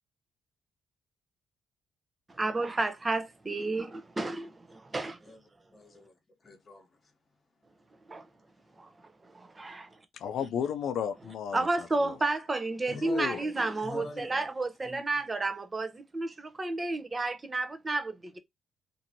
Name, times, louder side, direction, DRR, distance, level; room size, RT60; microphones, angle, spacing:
voice 1, 2.3-5.3 8.1-8.3 8.8-8.9 9.2-9.9 11.5-18.4, right 2 dB, 25° right, 0.6 m, -32 dB
voice 2, 5.7-7.1 12.9-14.5 14.8-15.0, left 2 dB, 35° left, 1.0 m, -45 dB
voice 3, 10.1-12.2 12.9-13.4, left 8 dB, 70° left, 0.3 m, -34 dB
2.8 x 2.6 x 2.6 m
cardioid pair, 90°, 0 cm